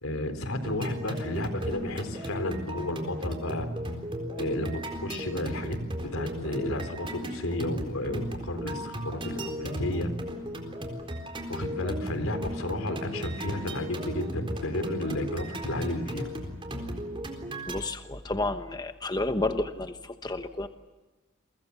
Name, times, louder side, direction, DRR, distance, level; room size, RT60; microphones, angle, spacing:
voice 1, 0.0-3.7 4.4-10.1 11.5-16.3, left 1 dB, 85° left, 9 dB, 3.8 m, -32 dB
sound 1, 0.6-17.8, equal, 25° right, 4.0 m, -36 dB
voice 2, 17.7-20.7, left 2 dB, 20° left, 8 dB, 1.0 m, -31 dB
29.5 x 23.5 x 7.1 m, 1.2 s
head